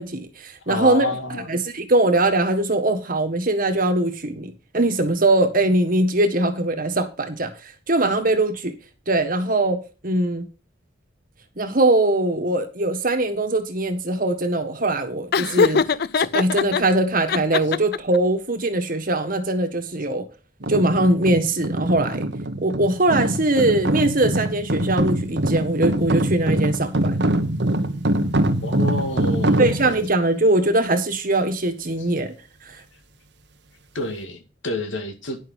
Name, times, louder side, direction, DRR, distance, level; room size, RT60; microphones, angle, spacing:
voice 1, 0.0-1.1 1.5-8.7 9.1-10.4 11.6-15.8 16.2-20.3 20.7-22.3 22.6-27.2 29.6-32.3 32.7-32.8, right 2 dB, 45° right, 1.7 m, -21 dB
voice 2, 0.6-1.5 28.6-29.7 33.9-35.4, left 2 dB, 85° left, 2.0 m, -28 dB
Laughter, 15.3-16.8 17.3-18.2, left 5 dB, 55° left, 0.5 m, -21 dB
sound 1, 20.6-30.1, right 1 dB, 65° right, 1.2 m, -23 dB
10.5 x 6.5 x 5.4 m
head